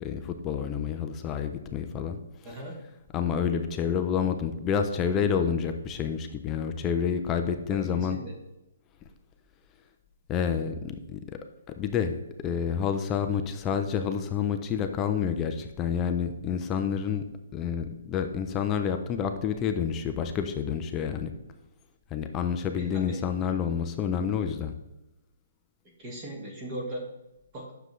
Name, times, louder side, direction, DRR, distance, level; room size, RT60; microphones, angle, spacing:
voice 1, 0.0-2.2 3.1-8.2 10.3-11.2 11.7-17.2 17.5-21.3 22.1-24.7, left 7 dB, 10° left, 6 dB, 0.4 m, -29 dB
voice 2, 2.4-2.8 7.7-8.3 22.8-23.3 26.0-27.0 27.5-27.7, right 1 dB, 15° right, 0 dB, 1.3 m, -38 dB
9.6 x 6.7 x 3.1 m, 0.96 s
hypercardioid pair, 175°, 0 cm